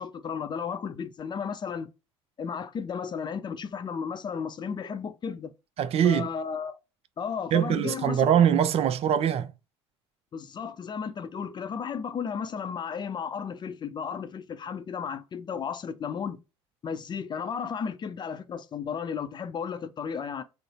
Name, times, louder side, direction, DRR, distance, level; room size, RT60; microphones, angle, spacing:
voice 1, 0.0-1.9 2.4-5.5 6.0-6.8 7.2-8.3 10.3-16.4 16.8-20.4, left 6 dB, 30° left, 0.5 m, -34 dB
voice 2, 5.8-6.3 7.5-9.5, right 9 dB, 45° right, 0.5 m, -23 dB
3.8 x 2.0 x 4.2 m
hypercardioid pair, 65°, 15 cm